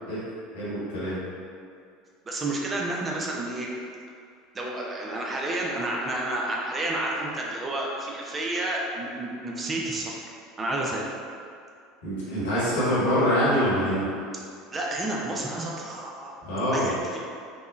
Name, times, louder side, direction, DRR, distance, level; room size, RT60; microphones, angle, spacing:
voice 1, 0.5-1.2 12.0-14.1 16.5-17.0, equal, 70° left, -10 dB, 1.2 m, -25 dB
voice 2, 2.3-3.7 4.5-10.1 10.6-11.0 14.7-16.3 16.7-17.2, right 2 dB, 25° right, -2 dB, 0.4 m, -30 dB
3.5 x 2.1 x 2.5 m, 2.3 s
figure-of-eight pair, 70°, 0 cm